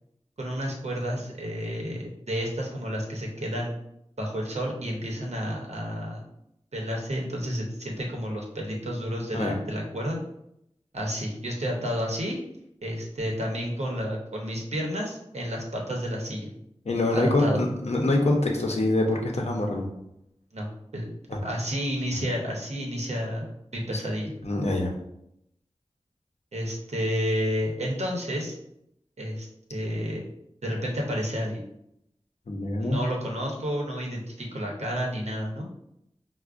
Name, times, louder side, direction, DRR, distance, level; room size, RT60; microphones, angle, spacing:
voice 1, 0.4-3.7 4.2-6.3 6.7-10.2 10.9-12.4 12.8-16.5 17.1-17.6 20.5-21.1 21.4-24.3 26.5-28.5 29.2-30.2 30.6-31.6 32.8-35.7, equal, 75° right, -1 dB, 0.8 m, -31 dB
voice 2, 16.9-19.9 21.3-21.4 24.4-24.9 32.5-33.0, left 2 dB, 70° left, 1 dB, 0.6 m, -25 dB
4.6 x 2.1 x 2.4 m, 0.79 s
wide cardioid pair, 55°, 11 cm